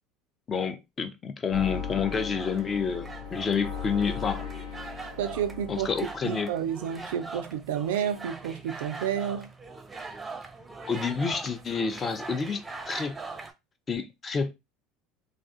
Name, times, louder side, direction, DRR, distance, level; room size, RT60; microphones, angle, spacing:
voice 1, 0.5-4.5 5.7-6.5 10.8-13.2 13.9-14.5, left 5 dB, 30° left, 0.4 m, -29 dB
sound 1, 1.5-6.4, left 7 dB, 85° left, 0.9 m, -37 dB
sound 2, 2.1-13.5, right 3 dB, 20° right, 0.5 m, -42 dB
voice 2, 5.2-5.9 6.2-9.5, right 9 dB, 70° right, 0.3 m, -30 dB
2.4 x 2.3 x 2.4 m
hypercardioid pair, 75°, 0 cm